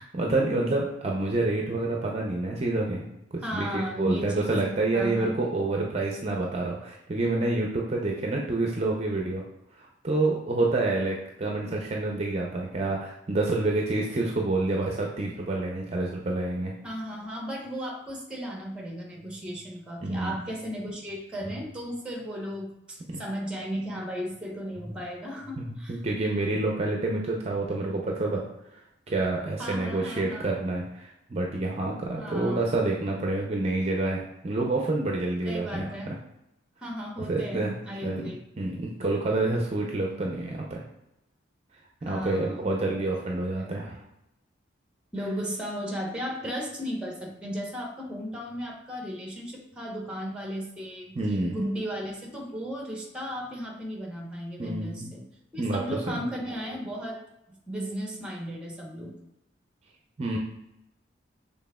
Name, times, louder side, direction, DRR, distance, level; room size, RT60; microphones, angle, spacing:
voice 1, 0.0-3.0 3.5-9.4 9.8-16.7 20.0-20.4 23.1-23.2 25.6-28.4 28.7-28.8 29.1-36.2 37.3-37.8 38.0-40.8 42.0-44.0 51.2-51.6 54.6-55.1 55.6-56.2 60.2-60.4, right 2 dB, 35° right, 0 dB, 0.5 m, -28 dB
voice 2, 3.4-5.3 16.8-26.0 29.6-30.5 32.1-32.6 35.4-36.1 36.8-38.4 42.0-43.8 45.1-51.1 51.5-55.3 55.5-57.2 57.7-59.2, equal, 5° right, 0 dB, 0.8 m, -35 dB
6.2 x 3.5 x 2.2 m, 0.87 s
head